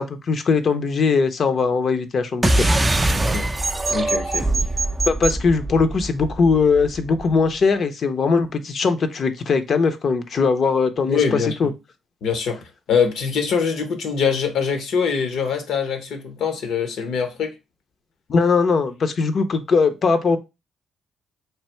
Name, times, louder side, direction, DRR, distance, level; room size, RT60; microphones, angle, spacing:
voice 1, 0.0-3.0 5.1-11.7 18.3-20.4, left 4 dB, 50° left, 0.6 m, -20 dB
sound 1, 2.4-7.3, right 2 dB, 15° right, 0.4 m, -22 dB
voice 2, 3.1-3.5 3.9-4.5 11.1-11.7 12.2-12.6 12.9-17.5, left 6 dB, 75° left, 1.0 m, -23 dB
3.3 x 2.5 x 4.3 m
cardioid pair, 90°, 0 cm